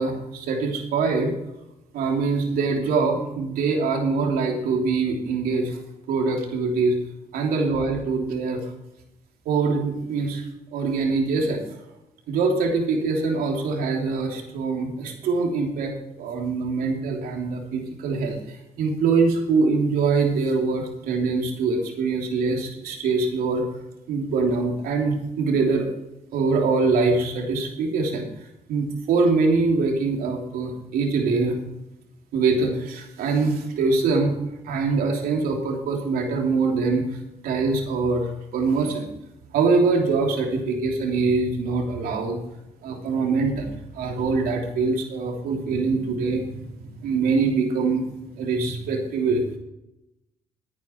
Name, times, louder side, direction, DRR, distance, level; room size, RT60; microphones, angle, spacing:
voice 1, 0.0-1.4 1.9-5.8 6.1-7.0 7.3-8.6 9.4-10.4 10.7-11.6 12.3-15.9 16.2-23.6 24.1-25.9 26.3-28.3 28.7-31.6 32.3-34.4 34.6-37.2 37.4-39.1 39.5-42.4 42.8-48.1 48.4-49.4, right 4 dB, 80° right, 2 dB, 3.2 m, -23 dB
15.0 x 9.6 x 4.5 m, 0.88 s
cardioid pair, 80°, 15 cm